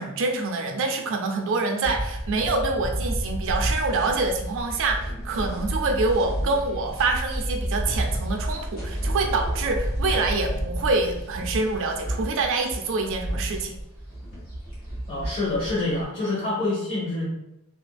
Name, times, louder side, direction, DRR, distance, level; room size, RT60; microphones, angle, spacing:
voice 1, 0.0-13.8, right 3 dB, 60° right, 4 dB, 0.4 m, -26 dB
sound 1, 1.8-16.0, right 1 dB, 70° left, 1.5 m, -30 dB
voice 2, 15.1-17.3, left 2 dB, 30° left, -10 dB, 0.9 m, -26 dB
2.7 x 2.5 x 2.2 m, 0.86 s
head